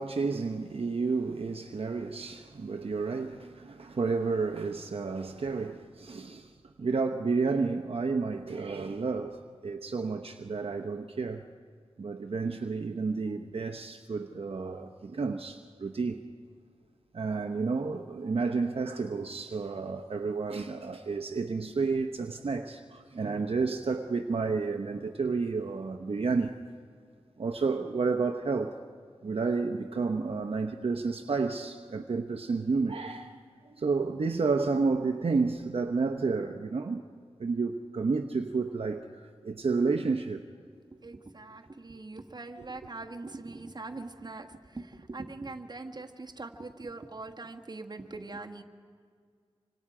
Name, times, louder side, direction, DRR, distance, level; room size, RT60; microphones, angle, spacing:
voice 1, 0.0-6.5 6.8-11.5 12.0-16.2 17.1-26.6 27.4-28.8 29.2-33.4 33.7-37.0 37.4-40.4, right 4 dB, 60° right, 0.9 m, -31 dB
voice 2, 40.9-48.6, right 3 dB, 40° right, 1.4 m, -42 dB
26.5 x 25.5 x 4.9 m
wide cardioid pair, 85°, 11 cm